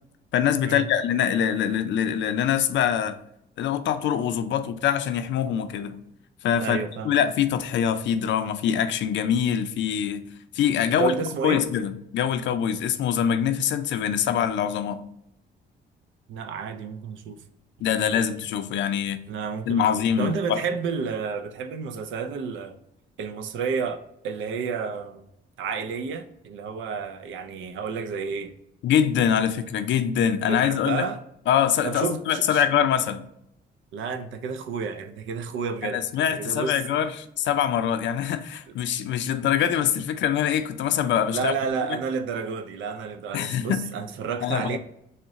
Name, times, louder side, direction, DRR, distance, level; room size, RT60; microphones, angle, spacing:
voice 1, 0.3-3.2 3.6-6.0 6.4-6.8 7.0-10.3 10.5-11.1 11.4-15.0 17.8-19.2 19.7-20.6 28.8-31.1 31.5-33.2 35.8-41.5 43.3-43.8 44.4-44.8, left 9 dB, 65° left, 0.4 m, -24 dB
voice 2, 6.6-7.1 10.9-11.7 16.3-17.4 17.9-18.2 19.3-22.8 23.2-25.2 25.6-28.5 30.5-31.2 31.8-32.6 33.9-36.0 36.3-36.8 41.3-44.8, right 5 dB, 80° right, 0.5 m, -31 dB
3.9 x 2.1 x 3.6 m
cardioid pair, 90°, 20 cm